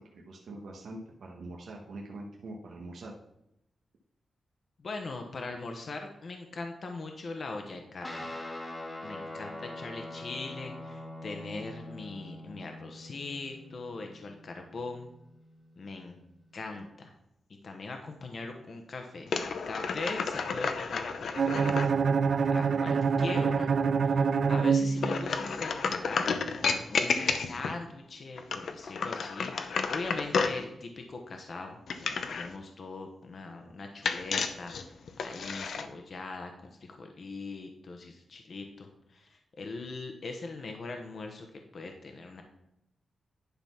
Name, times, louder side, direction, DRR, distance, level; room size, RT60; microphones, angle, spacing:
voice 1, 0.1-3.2, right 2 dB, 75° right, -1 dB, 1.2 m, -43 dB
voice 2, 4.8-8.3 9.0-15.1 15.8-16.2 16.5-17.1 17.6-21.8 22.5-23.7 24.1-41.5 41.7-42.4, left 3 dB, 50° left, 4 dB, 1.0 m, -41 dB
Guitar, 8.0-16.8, left 1 dB, 25° left, 1.3 m, -44 dB
sound 1, 19.3-21.9 25.0-27.8 28.4-30.6 31.9-32.5 34.0-35.9, left 5 dB, 70° left, 0.7 m, -31 dB
Bowed string instrument, 21.4-25.5, right 5 dB, 60° right, 0.4 m, -26 dB
10.5 x 4.0 x 5.9 m, 0.84 s
wide cardioid pair, 155°, 0 cm